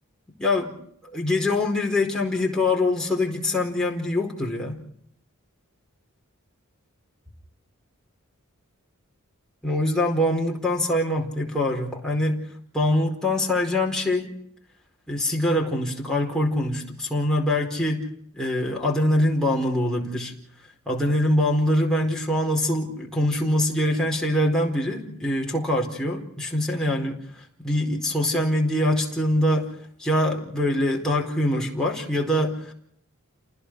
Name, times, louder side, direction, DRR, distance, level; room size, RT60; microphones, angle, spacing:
voice 1, 0.4-0.8 1.1-4.8 9.6-12.5 12.7-14.3 15.1-18.1 18.3-20.3 20.9-27.2 27.6-29.7 30.0-32.7, left 1 dB, 5° left, -2 dB, 4.7 m, -24 dB
30.0 x 20.0 x 4.9 m, 0.65 s
head